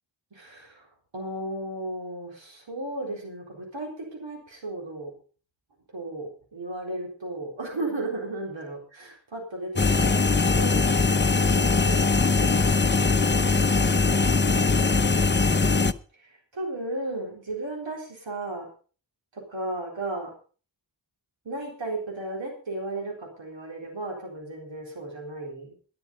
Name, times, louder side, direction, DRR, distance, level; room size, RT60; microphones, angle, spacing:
voice 1, 0.3-5.1 5.9-12.6 16.1-18.7 19.3-20.3 21.4-25.7, right 2 dB, 90° right, -1 dB, 4.1 m, -35 dB
sound 1, 9.8-15.9, left 4 dB, 25° left, 0.7 m, -21 dB
12.0 x 11.5 x 5.3 m, 0.39 s
cardioid pair, 45°, 44 cm